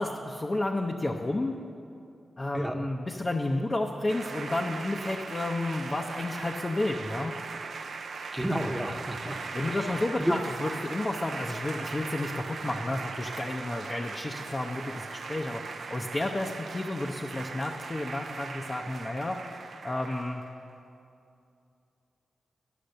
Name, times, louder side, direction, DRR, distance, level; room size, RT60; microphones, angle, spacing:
voice 1, 0.0-1.5 2.4-7.4 9.5-20.4, left 2 dB, 35° left, 1 dB, 0.6 m, -31 dB
sound 1, 4.1-20.5, right 4 dB, 75° right, 0.5 m, -39 dB
voice 2, 8.3-9.4 9.7-10.4, equal, 5° right, 3 dB, 0.9 m, -31 dB
10.0 x 5.9 x 6.5 m, 2.6 s
cardioid pair, 60°, 0 cm